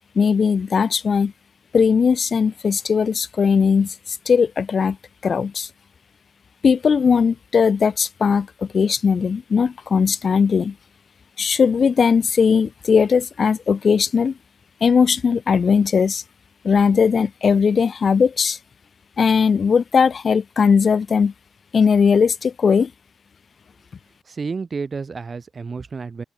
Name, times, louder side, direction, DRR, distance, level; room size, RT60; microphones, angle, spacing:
voice 1, 0.2-1.3 1.7-3.9 4.3-5.0 5.2-5.7 6.6-8.5 8.7-10.7 11.4-14.3 14.8-16.2 16.6-18.6 19.2-21.3 21.7-22.9, left 6 dB, 50° left, 0.4 m, -18 dB
voice 2, 24.3-26.2, right 4 dB, 40° right, 2.8 m, -30 dB
open air
wide cardioid pair, 120°, 0 cm